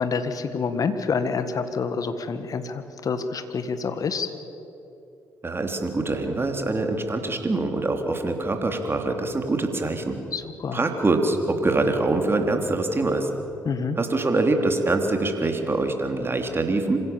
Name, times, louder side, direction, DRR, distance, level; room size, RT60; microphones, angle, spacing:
voice 1, 0.0-4.3 10.3-10.9 13.7-14.0, left 5 dB, 50° left, 10 dB, 1.8 m, -27 dB
voice 2, 5.4-10.2 10.7-13.3 14.0-17.0, right 2 dB, 30° right, 4 dB, 3.4 m, -24 dB
26.5 x 16.5 x 7.2 m, 3.0 s
hypercardioid pair, 45°, 8 cm